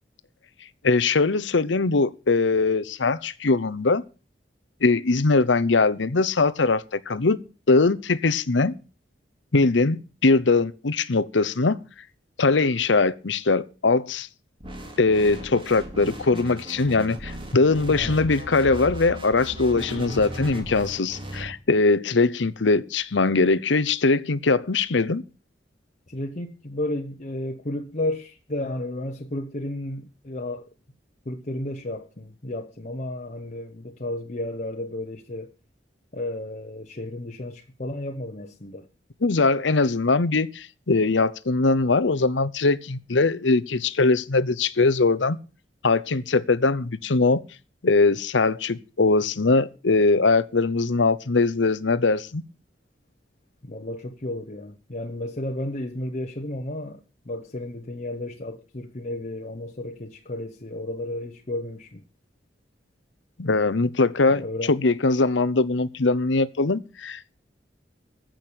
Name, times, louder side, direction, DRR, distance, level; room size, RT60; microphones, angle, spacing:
voice 1, 0.8-4.0 4.8-7.4 7.7-8.7 9.5-11.8 12.4-14.3 15.0-25.2 39.2-45.4 45.8-47.4 47.8-52.4 63.4-67.4, left 3 dB, 80° left, 0.8 m, -21 dB
sound 1, 14.6-21.5, equal, 30° right, 3.2 m, -37 dB
voice 2, 17.9-18.3 26.1-30.7 31.2-35.5 36.1-38.9 53.6-62.0 64.2-64.8, left 1 dB, 40° left, 1.1 m, -33 dB
15.0 x 6.3 x 8.6 m
head